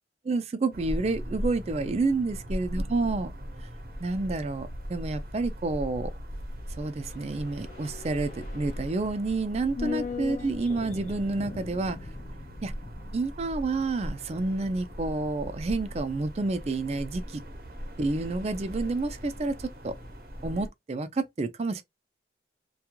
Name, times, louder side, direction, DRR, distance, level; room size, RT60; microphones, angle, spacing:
voice 1, 0.2-3.3 4.0-6.1 6.8-12.0 12.6-12.7 13.1-17.2 18.0-19.9 20.4-21.8, right 3 dB, 35° right, 0.4 m, -29 dB
sound 1, 0.7-20.7, equal, 55° right, 0.8 m, -39 dB
sound 2, 6.4-16.8 17.1-17.2, left 4 dB, 45° left, 0.3 m, -42 dB
2.9 x 2.3 x 2.2 m
head